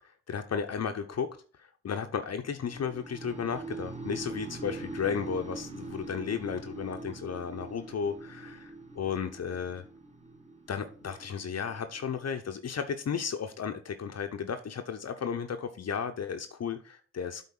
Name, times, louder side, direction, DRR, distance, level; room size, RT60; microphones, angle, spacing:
voice 1, 0.3-1.3 1.8-9.8 10.7-17.5, left 7 dB, 50° left, 7 dB, 0.9 m, -34 dB
sound 1, 2.7-12.7, right 2 dB, 20° right, 1.9 m, -43 dB
8.5 x 3.8 x 5.5 m, 0.40 s
hypercardioid pair, 40°, 33 cm